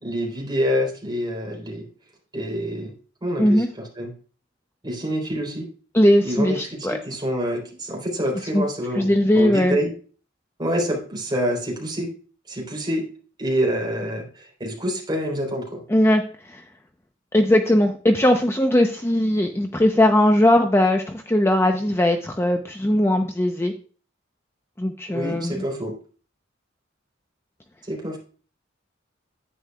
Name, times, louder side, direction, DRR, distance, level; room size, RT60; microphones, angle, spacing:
voice 1, 0.0-1.8 2.3-2.9 3.2-4.1 4.8-5.7 6.2-9.9 10.6-12.1 12.5-13.1 13.4-15.8 25.1-25.9 27.9-28.2, equal, 25° right, 0 dB, 3.6 m, -27 dB
voice 2, 5.9-7.0 8.5-8.6 8.9-9.8 15.9-16.2 16.5-16.6 17.3-23.7 24.8-25.6, left 1 dB, 15° left, 4 dB, 0.7 m, -19 dB
10.0 x 9.4 x 2.3 m, 0.39 s
head